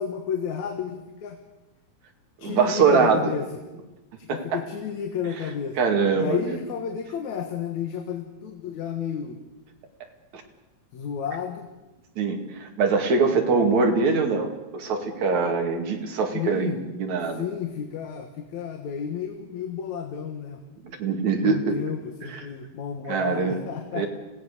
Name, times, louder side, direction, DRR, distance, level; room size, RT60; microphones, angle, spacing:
voice 1, 0.0-1.4 2.4-3.4 4.3-5.8 6.2-9.4 10.9-11.7 16.3-16.8 17.4-20.6 21.4-24.1, left 7 dB, 75° left, 5 dB, 2.8 m, -32 dB
voice 2, 2.4-3.4 4.3-4.6 5.4-6.6 12.2-17.4 21.0-21.8 22.2-22.4 23.1-23.6 23.9-24.1, right 4 dB, 70° right, 3 dB, 3.7 m, -23 dB
26.0 x 18.0 x 6.8 m, 1.1 s
omnidirectional pair, 3.4 m